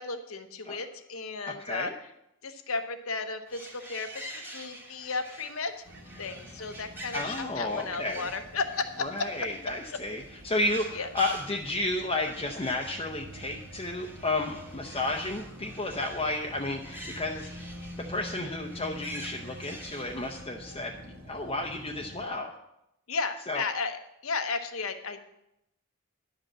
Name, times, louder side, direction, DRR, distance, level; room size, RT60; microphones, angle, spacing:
voice 1, 0.0-1.9 2.4-5.8 6.2-9.7 10.9-11.1 23.1-25.2, left 4 dB, 75° left, 7 dB, 0.9 m, -34 dB
voice 2, 1.5-1.9 7.1-8.3 9.0-17.5 18.0-22.5 23.5-23.6, left 2 dB, 25° left, 1 dB, 0.7 m, -32 dB
sound 1, 3.5-20.5, right 1 dB, 10° right, 1.2 m, -47 dB
sound 2, 5.8-22.3, equal, 60° right, 1.4 m, -47 dB
11.0 x 5.3 x 7.4 m, 0.85 s
head